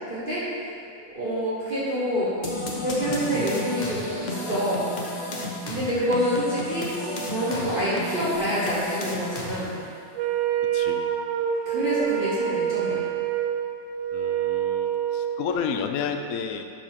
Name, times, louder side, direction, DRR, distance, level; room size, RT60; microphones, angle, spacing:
voice 1, 0.1-0.4 0.9-2.3 2.8-4.8 5.6-6.9 7.2-9.7 11.6-13.1, equal, 30° right, -10 dB, 1.3 m, -27 dB
sound 1, 2.4-9.8, left 1 dB, 45° left, 0.5 m, -32 dB
Wind instrument woodwind instrument, 10.1-15.4, right 9 dB, 80° right, 1.3 m, -26 dB
voice 2, 10.7-11.1 14.1-16.6, left 6 dB, 80° left, 6 dB, 0.7 m, -31 dB
11.5 x 5.2 x 3.6 m, 2.3 s
omnidirectional pair, 2.1 m